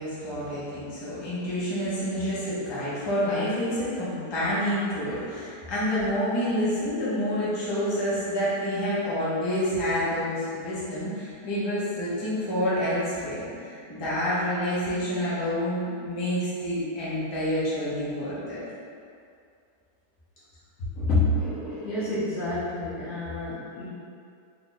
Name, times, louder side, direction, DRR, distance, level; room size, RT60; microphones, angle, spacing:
voice 1, 0.0-18.6, equal, 20° left, -10 dB, 0.7 m, -28 dB
voice 2, 21.0-23.9, left 2 dB, 60° left, -10 dB, 1.1 m, -28 dB
3.4 x 2.4 x 4.0 m, 2.4 s
omnidirectional pair, 1.8 m